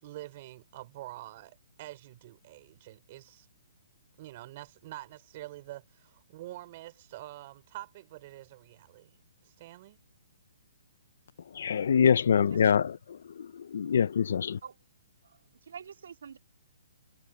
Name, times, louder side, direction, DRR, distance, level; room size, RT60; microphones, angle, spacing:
voice 1, 0.0-3.5 4.2-10.0, right 16 dB, 30° right, 4.7 m, -46 dB
voice 2, 11.5-14.6, left 7 dB, 55° left, 0.5 m, -25 dB
voice 3, 15.2-16.4, right 7 dB, 60° right, 2.5 m, -46 dB
hypercardioid pair, 175°, 0 cm